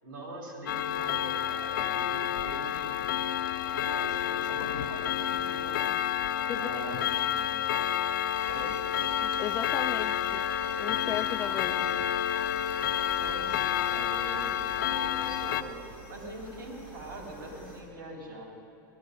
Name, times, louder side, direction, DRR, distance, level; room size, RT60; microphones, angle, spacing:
voice 1, 0.0-3.0 3.4-5.8 6.4-7.7 8.5-8.7 11.5-11.9 13.1-15.8 16.1-18.4, right 1 dB, 80° right, -1 dB, 4.2 m, -43 dB
Clock, 0.7-15.6, left 10 dB, 80° left, 0.5 m, -30 dB
voice 2, 6.5-7.0 9.2-10.5 10.8-11.8, left 10 dB, 25° left, 14 dB, 0.3 m, -36 dB
sound 1, 8.3-17.8, right 2 dB, 20° right, 4.2 m, -48 dB
18.0 x 13.0 x 5.4 m, 2.7 s
supercardioid pair, 120°, 11 cm